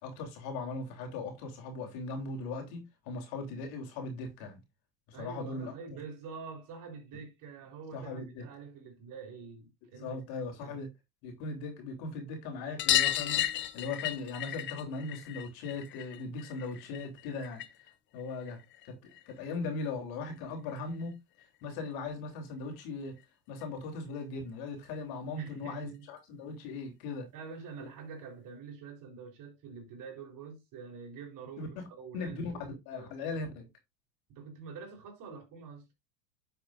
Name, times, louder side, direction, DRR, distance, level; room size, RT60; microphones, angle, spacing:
voice 1, 0.0-4.6 5.1-5.7 7.9-8.4 9.9-10.9 11.2-13.4 13.7-17.6 18.1-18.6 18.8-19.0 19.3-21.2 21.6-23.1 23.5-27.3 27.8-27.9 31.6-31.8 32.1-32.5 32.9-33.7, left 3 dB, 50° left, 3.6 m, -39 dB
voice 2, 5.1-10.8 25.3-26.1 27.3-33.5 34.3-35.8, right 5 dB, 45° right, 4.0 m, -46 dB
sound 1, 12.8-17.9 18.2-19.3 20.7-20.8 21.0-21.1 21.4-21.5 22.8-22.9 23.2-23.3 23.6-23.7 24.9-25.0 25.8-25.9, left 12 dB, 25° left, 0.7 m, -33 dB
9.8 x 7.8 x 2.6 m
figure-of-eight pair, 85°, 46 cm